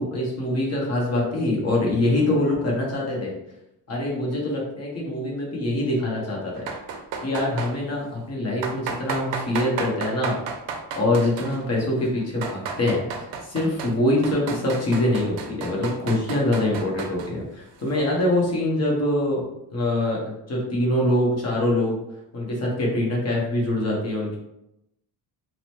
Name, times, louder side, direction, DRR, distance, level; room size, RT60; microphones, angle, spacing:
voice 1, 0.0-3.4 3.9-6.7 7.2-10.4 10.9-19.4 19.7-22.0 22.3-24.4, left 1 dB, 35° left, -3 dB, 0.9 m, -24 dB
sound 1, 6.6-7.8 8.6-11.7 12.2-14.0 14.2-17.3, right 5 dB, 70° right, 0.5 m, -33 dB
2.8 x 2.1 x 2.9 m, 0.85 s
cardioid pair, 115°, 45 cm